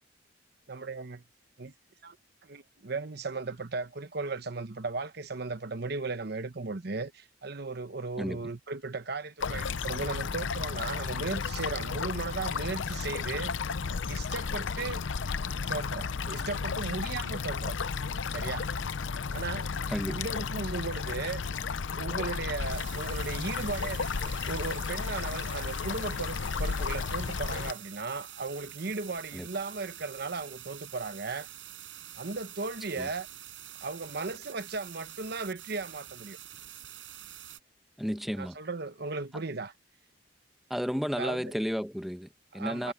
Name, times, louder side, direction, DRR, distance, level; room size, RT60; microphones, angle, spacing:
voice 1, 0.7-1.2 1.6-1.7 2.0-2.2 2.4-13.5 14.1-15.0 15.7-17.8 18.3-18.7 19.3-19.7 20.1-21.4 21.9-31.5 32.1-33.3 33.8-36.4 38.4-39.7 41.2-41.5 42.6-42.9, right 3 dB, 60° right, 1.1 m, -36 dB
voice 2, 8.2-8.5 19.9-20.2 29.3-29.5 33.0-33.1 38.0-38.6 40.7-42.9, equal, ahead, 1.2 m, -33 dB
sound 1, 9.4-27.7, left 5 dB, 85° left, 0.6 m, -33 dB
sound 2, 22.7-37.6, right 12 dB, 90° right, 7.4 m, -47 dB
head